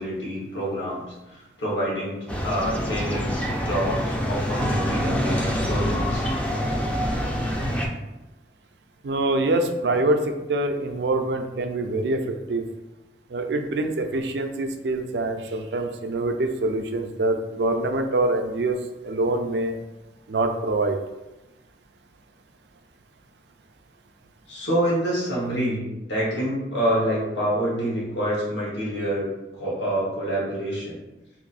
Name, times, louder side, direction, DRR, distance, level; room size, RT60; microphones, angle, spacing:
voice 1, 0.0-6.2 24.5-29.3 29.5-31.0, equal, 85° left, -6 dB, 1.5 m, -27 dB
sound 1, 2.3-7.9, equal, 5° left, 0.3 m, -26 dB
voice 2, 9.0-12.6 13.3-18.8 19.0-19.8 20.3-21.0, right 2 dB, 70° right, 6 dB, 0.4 m, -25 dB
3.0 x 2.6 x 4.0 m, 1.0 s
head